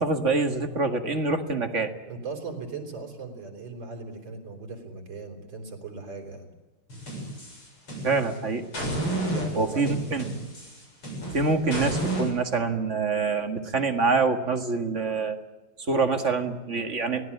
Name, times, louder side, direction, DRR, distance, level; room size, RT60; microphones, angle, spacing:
voice 1, 0.0-1.9 8.0-8.6 9.6-10.3 11.3-15.4 15.9-17.3, right 4 dB, 35° right, 6 dB, 2.0 m, -25 dB
voice 2, 2.1-6.5 9.3-10.3, right 4 dB, 60° right, 2 dB, 4.7 m, -38 dB
sound 1, 6.9-8.3 8.7-12.3, right 1 dB, 90° left, 8.4 m, -31 dB
24.0 x 18.0 x 8.6 m, 1.1 s
omnidirectional pair, 2.3 m